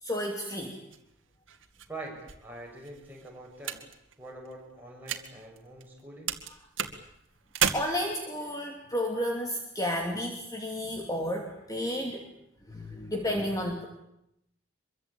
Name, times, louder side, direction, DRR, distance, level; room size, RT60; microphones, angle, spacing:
voice 1, 0.0-0.8 7.7-12.3 12.7-13.9, equal, 20° left, 2 dB, 2.8 m, -32 dB
sound 1, 0.9-6.0 6.3-7.7, right 8 dB, 70° right, 2.3 m, -35 dB
voice 2, 1.9-3.8 4.2-6.3, right 2 dB, 10° right, -2 dB, 8.0 m, -44 dB
25.0 x 23.5 x 8.8 m, 0.80 s
head